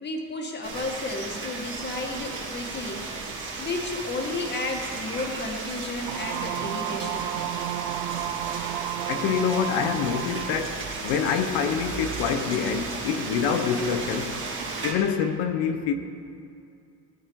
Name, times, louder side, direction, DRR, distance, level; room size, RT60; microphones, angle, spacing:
voice 1, 0.0-3.0 3.6-7.3, left 2 dB, 25° left, 1 dB, 2.1 m, -32 dB
sound 1, 0.6-14.9, right 3 dB, 25° right, 2.9 m, -35 dB
sound 2, 6.1-10.6, right 14 dB, 75° right, 0.7 m, -32 dB
voice 2, 9.1-14.4 14.8-15.9, left 7 dB, 80° left, 7 dB, 1.3 m, -26 dB
20.0 x 11.0 x 4.9 m, 2.5 s
cardioid pair, 145°, 43 cm